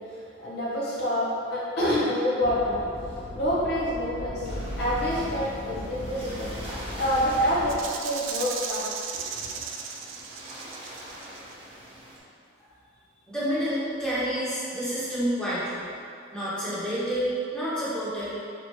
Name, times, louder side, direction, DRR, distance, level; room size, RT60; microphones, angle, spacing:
voice 1, 0.4-2.8 3.3-6.5 7.0-8.8 9.4-9.5, equal, 55° left, -8 dB, 0.9 m, -27 dB
sound 1, 2.4-7.8, left 1 dB, 30° left, 0.4 m, -39 dB
sound 2, 4.4-12.2, right 1 dB, 30° right, 0.7 m, -41 dB
Rattle (instrument), 7.7-11.5, right 6 dB, 75° right, 0.3 m, -36 dB
voice 2, 13.3-15.8 16.3-18.4, equal, 5° left, -11 dB, 0.9 m, -29 dB
3.1 x 2.5 x 4.4 m, 2.4 s
head